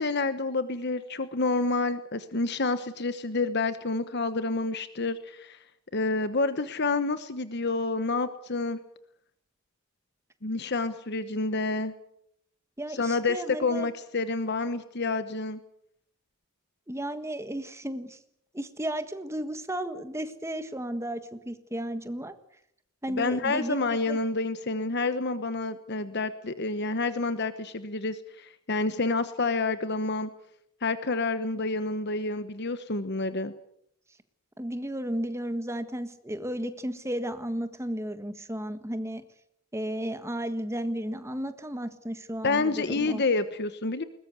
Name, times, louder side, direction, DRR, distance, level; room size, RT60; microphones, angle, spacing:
voice 1, 0.0-5.6 5.9-8.8 10.4-11.9 12.9-15.6 23.1-30.3 30.8-33.5 42.4-44.0, left 3 dB, 50° left, 11 dB, 1.1 m, -28 dB
voice 2, 12.8-13.9 16.9-18.2 18.5-22.3 23.0-24.2 34.6-39.2 39.7-43.2, right 1 dB, 10° right, 10 dB, 1.5 m, -34 dB
21.5 x 19.5 x 8.2 m, 0.74 s
head